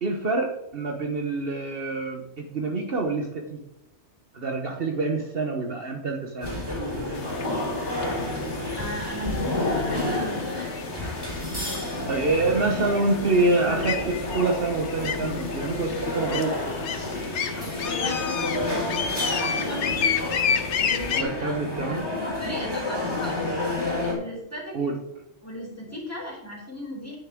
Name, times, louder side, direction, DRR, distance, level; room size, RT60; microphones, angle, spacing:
voice 1, 0.0-3.6 4.3-6.6 12.1-16.5 21.0-22.1 24.7-25.0, right 3 dB, 55° right, 2 dB, 1.3 m, -26 dB
sound 1, 6.4-24.1, left 1 dB, 20° right, 4.4 m, -30 dB
sound 2, 7.1-21.2, left 7 dB, 75° left, 1.1 m, -32 dB
voice 2, 8.8-10.8 17.5-20.2 20.8-22.0 22.4-23.5 24.0-24.8 25.4-27.2, left 1 dB, 15° left, -2 dB, 3.4 m, -37 dB
9.5 x 9.2 x 3.7 m, 0.89 s
omnidirectional pair, 1.2 m